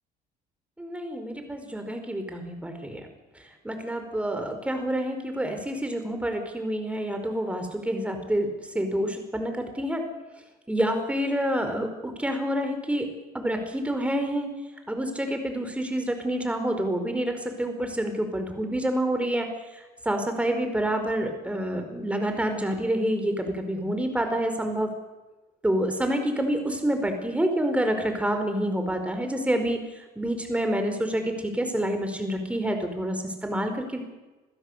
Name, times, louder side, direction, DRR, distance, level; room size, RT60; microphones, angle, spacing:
voice 1, 0.8-3.0 3.6-10.0 10.7-13.1 13.3-14.5 14.9-19.5 19.7-24.9 25.6-34.0, right 1 dB, 5° right, 6 dB, 4.8 m, -28 dB
27.0 x 16.0 x 8.2 m, 1.1 s
cardioid pair, 110°, 17 cm